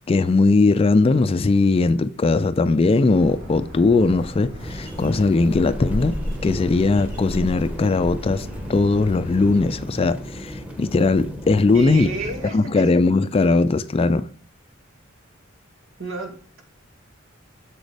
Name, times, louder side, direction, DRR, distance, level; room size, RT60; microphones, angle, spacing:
voice 1, 0.1-12.1 12.5-14.3, left 3 dB, 30° left, 0.3 m, -19 dB
Bird, 3.1-9.6, equal, 45° right, 2.9 m, -34 dB
sound 1, 4.6-12.5, equal, 5° right, 1.1 m, -36 dB
voice 2, 11.7-12.8 16.0-16.6, right 4 dB, 80° right, 1.9 m, -31 dB
7.2 x 6.3 x 3.3 m
head